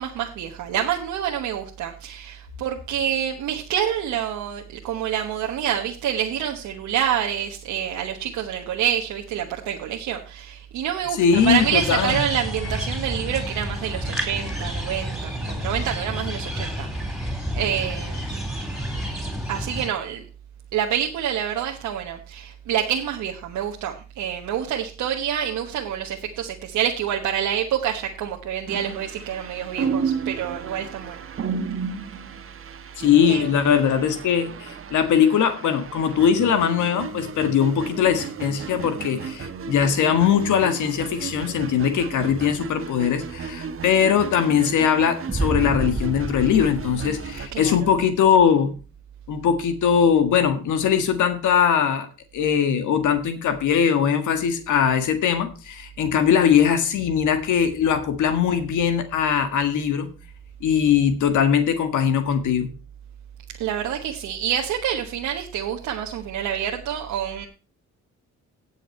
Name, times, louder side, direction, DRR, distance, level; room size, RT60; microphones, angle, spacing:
voice 1, 0.0-18.4 19.5-20.2 20.7-31.2 33.2-33.4 47.5-47.9 63.6-67.5, right 9 dB, 85° right, 1.3 m, -27 dB
voice 2, 11.2-12.2 33.0-48.7 49.3-52.1 52.3-60.1 60.6-62.7, left 8 dB, 80° left, 1.7 m, -21 dB
sound 1, 11.3-19.9, equal, ahead, 3.6 m, -30 dB
sound 2, 28.7-47.5, right 6 dB, 45° right, 1.3 m, -33 dB
sound 3, 45.3-48.3, right 3 dB, 15° right, 0.8 m, -30 dB
17.5 x 6.5 x 4.4 m
cardioid pair, 90°, 30 cm